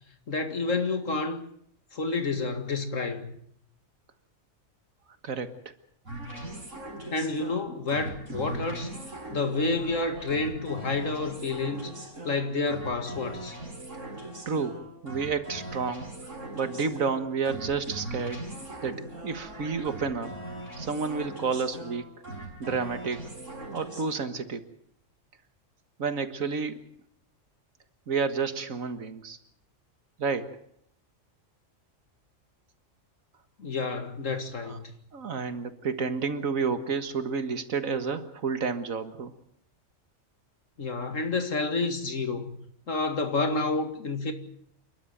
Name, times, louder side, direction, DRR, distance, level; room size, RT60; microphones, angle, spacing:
voice 1, 0.3-1.4 1.9-3.3 7.1-8.9 9.3-11.9 12.2-13.5 33.6-34.9 40.8-42.6 42.9-44.3, left 3 dB, 75° left, 2.5 m, -29 dB
voice 2, 5.2-5.5 14.0-14.1 14.5-18.4 18.8-20.3 20.8-22.1 22.6-23.2 23.7-24.6 26.0-26.8 28.1-29.4 30.2-30.6 34.6-34.8 35.1-39.3, right 5 dB, 90° right, 2.0 m, -30 dB
sound 1, 6.1-24.1, right 1 dB, 70° right, 5.8 m, -40 dB
28.5 x 12.0 x 9.1 m
omnidirectional pair, 1.4 m